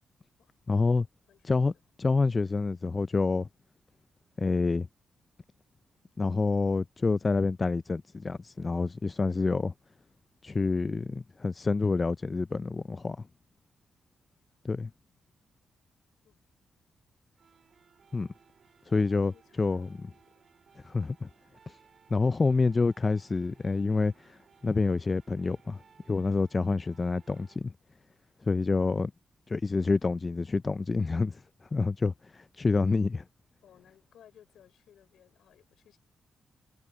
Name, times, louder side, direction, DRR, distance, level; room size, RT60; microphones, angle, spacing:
voice 1, 0.7-1.1 1.4-1.7 2.0-3.5 4.4-4.9 6.2-9.7 10.4-13.2 14.6-14.9 18.1-18.3 18.9-19.3 19.6-19.9 20.8-21.3 22.1-24.4 24.6-25.8 26.1-27.7 28.5-29.1 29.5-31.4 31.7-33.2, left 3 dB, 30° left, 0.3 m, -27 dB
voice 2, 1.3-1.6 16.2-16.5 19.3-20.0 20.3-20.5 33.6-36.0, left 10 dB, 85° left, 5.0 m, -60 dB
sound 1, 17.3-27.6, right 6 dB, 55° right, 2.4 m, -62 dB
cardioid pair, 115°, 0 cm